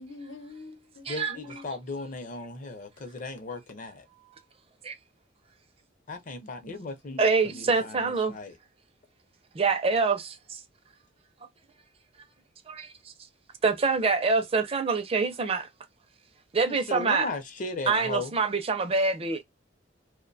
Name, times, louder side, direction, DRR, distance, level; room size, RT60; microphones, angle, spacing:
voice 1, 0.0-1.6 6.4-7.6, left 3 dB, 80° left, 0.9 m, -46 dB
voice 2, 1.1-4.0 6.1-8.6 16.7-18.4, left 3 dB, 45° left, 0.6 m, -37 dB
voice 3, 7.2-8.4 9.5-10.6 12.7-12.9 13.6-15.7 16.5-17.3 17.9-19.4, right 4 dB, 30° right, 0.4 m, -25 dB
2.5 x 2.1 x 2.6 m
head